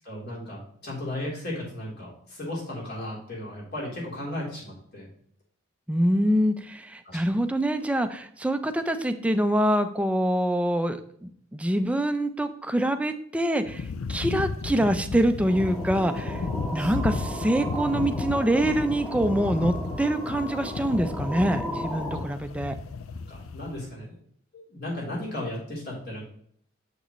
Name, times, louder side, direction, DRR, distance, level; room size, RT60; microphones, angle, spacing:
voice 1, 0.0-5.1 7.0-7.2 16.8-16.9 17.5-17.7 23.3-24.2 24.7-26.2, left 1 dB, 55° left, -4 dB, 3.3 m, -35 dB
voice 2, 5.9-16.4 16.7-22.8, right 1 dB, 5° right, 8 dB, 0.4 m, -25 dB
sound 1, 13.7-23.8, left 4 dB, 80° left, 0.5 m, -34 dB
sound 2, 15.5-22.2, equal, 10° left, 1.2 m, -35 dB
6.9 x 6.5 x 3.1 m, 0.62 s
head